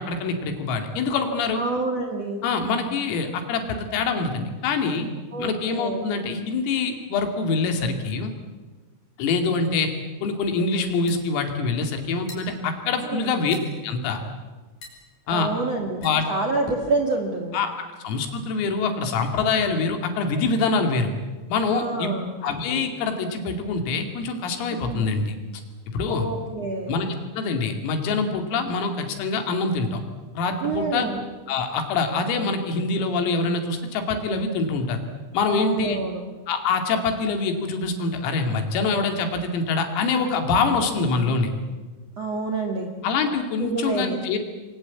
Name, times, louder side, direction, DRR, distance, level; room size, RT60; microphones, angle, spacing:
voice 1, 0.0-1.6 2.4-5.1 5.4-8.3 9.2-9.9 10.2-13.6 13.8-14.2 15.3-15.5 16.0-16.2 17.5-17.7 18.0-21.1 21.5-22.1 22.4-25.4 25.9-26.3 26.9-30.0 30.4-31.1 31.5-35.0 35.3-36.0 36.5-41.5 43.0-44.4, left 4 dB, 80° left, 5 dB, 5.1 m, -25 dB
voice 2, 1.5-2.4 5.3-6.0 13.1-13.3 15.3-17.6 21.7-22.3 24.9-25.1 26.1-26.9 30.6-31.2 35.4-36.2 42.2-42.9 43.6-44.2, right 3 dB, 55° right, 2 dB, 1.9 m, -27 dB
sound 1, 11.1-17.1, left 1 dB, 45° left, 6.9 m, -43 dB
28.0 x 23.0 x 8.5 m, 1.3 s
omnidirectional pair, 6.0 m